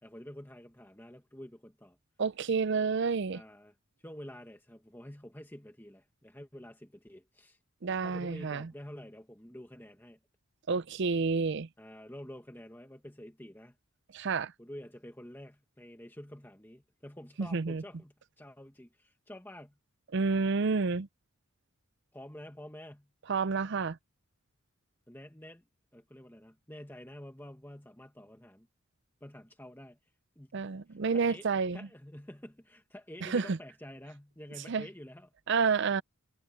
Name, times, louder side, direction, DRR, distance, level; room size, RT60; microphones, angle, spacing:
voice 1, 0.0-2.0 3.3-3.7 4.0-7.6 8.0-10.2 11.8-13.7 14.6-19.8 22.1-23.1 25.1-25.6 25.9-28.7 29.2-30.0 30.3-31.5 31.7-35.3, left 1 dB, 10° left, 1.5 m, -49 dB
voice 2, 2.2-3.4 7.8-8.7 10.7-11.7 14.1-14.5 17.4-17.8 20.1-21.1 23.3-24.0 30.5-31.9 33.2-33.6 34.7-34.9 35.5-36.0, right 4 dB, 55° right, 0.5 m, -29 dB
head